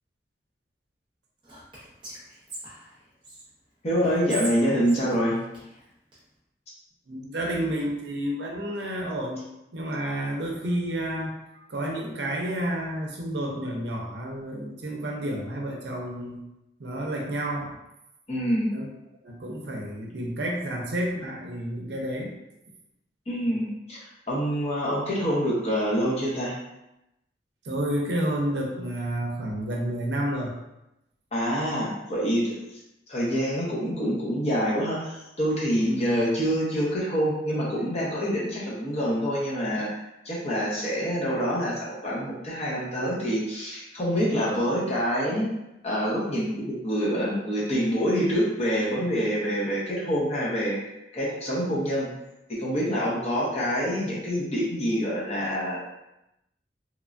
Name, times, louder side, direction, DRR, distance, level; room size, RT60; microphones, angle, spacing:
Whispering, 1.4-3.4 4.0-6.2, right 1 dB, 25° right, 0.7 m, -40 dB
voice 1, 3.8-5.4 18.3-18.7 23.3-26.5 31.3-32.6 33.1-45.5 45.8-50.8 51.1-52.1 52.5-55.9, equal, 35° left, -6 dB, 0.7 m, -26 dB
voice 2, 7.1-9.4 9.7-16.4 16.8-17.8 18.7-18.9 19.2-22.4 27.6-30.6 35.8-36.2, right 1 dB, 65° right, 0 dB, 0.5 m, -30 dB
3.0 x 2.2 x 2.5 m, 0.89 s
head